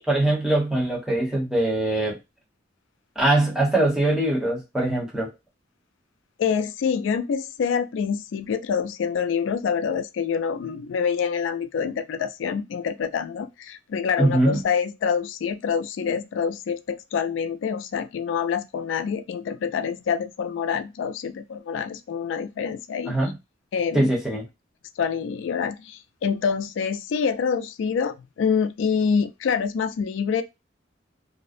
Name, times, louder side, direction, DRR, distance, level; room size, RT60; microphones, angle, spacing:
voice 1, 0.0-2.2 3.2-5.3 14.2-14.6 23.1-23.3 23.9-24.4, right 1 dB, 5° right, 0.8 m, -22 dB
voice 2, 6.4-23.2 23.7-24.1 25.0-30.4, left 6 dB, 85° left, 0.3 m, -26 dB
2.5 x 2.0 x 2.4 m
head